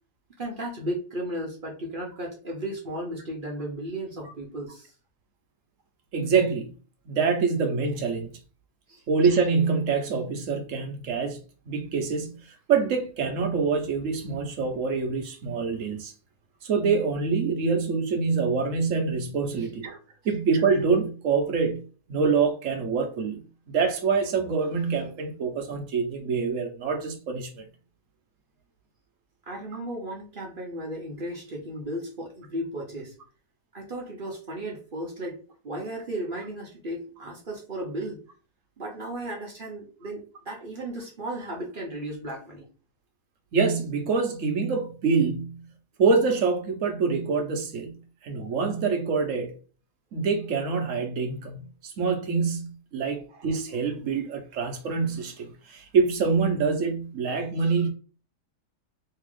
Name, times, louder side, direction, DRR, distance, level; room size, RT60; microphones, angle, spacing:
voice 1, 0.4-4.9 8.9-9.0 19.5-19.7 29.4-33.2 33.7-38.2 38.8-42.7, right 1 dB, 40° right, 0.9 m, -35 dB
voice 2, 6.1-6.7 7.1-8.3 9.1-11.4 11.6-12.4 12.7-16.1 16.6-20.0 20.2-21.8 22.1-23.4 23.7-27.6 43.5-45.6 46.0-48.0 48.2-49.5 50.1-57.9, right 5 dB, 60° right, 1.1 m, -25 dB
3.3 x 2.9 x 3.1 m
omnidirectional pair, 1.6 m